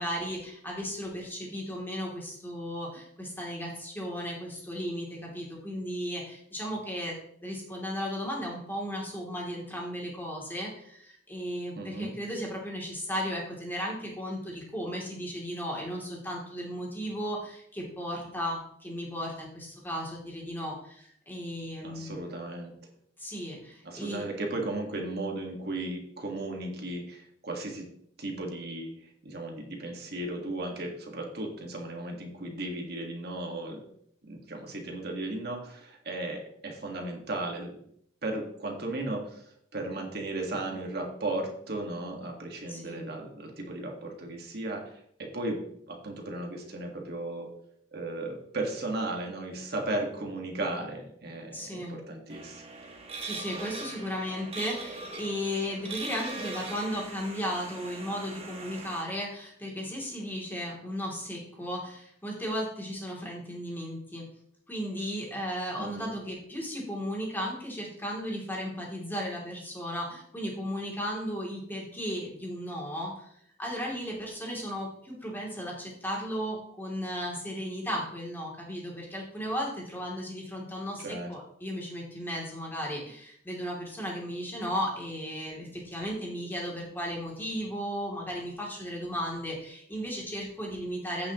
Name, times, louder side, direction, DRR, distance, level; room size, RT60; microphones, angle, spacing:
voice 1, 0.0-7.2 7.4-22.2 23.2-24.2 42.7-43.0 51.5-52.0 53.2-64.3 64.7-73.3 73.6-91.3, equal, 10° left, -3 dB, 2.9 m, -35 dB
voice 2, 11.8-12.1 21.8-22.7 23.8-27.9 28.2-28.9 29.2-33.8 34.2-37.8 38.2-44.9 45.2-45.6 45.9-47.5 47.9-52.6 65.8-66.1 81.0-81.3, right 2 dB, 60° right, 1 dB, 1.7 m, -35 dB
sound 1, 52.3-59.0, right 3 dB, 35° right, 1.5 m, -41 dB
15.5 x 6.1 x 3.0 m, 0.69 s
head